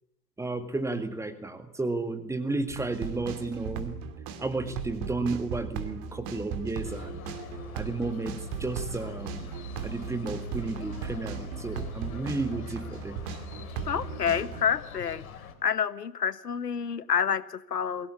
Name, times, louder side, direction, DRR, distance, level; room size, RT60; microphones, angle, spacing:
voice 1, 0.4-3.9 4.4-7.2 7.7-9.5 9.8-13.2, right 2 dB, 5° right, 10 dB, 2.0 m, -33 dB
sound 1, 2.7-14.6, right 6 dB, 35° right, 2.6 m, -37 dB
sound 2, 6.8-15.5, left 7 dB, 60° left, 3.3 m, -45 dB
voice 2, 13.9-15.2 15.6-18.1, left 7 dB, 75° left, 16 dB, 1.4 m, -28 dB
23.0 x 17.5 x 9.7 m, 0.84 s
figure-of-eight pair, 105°, 48 cm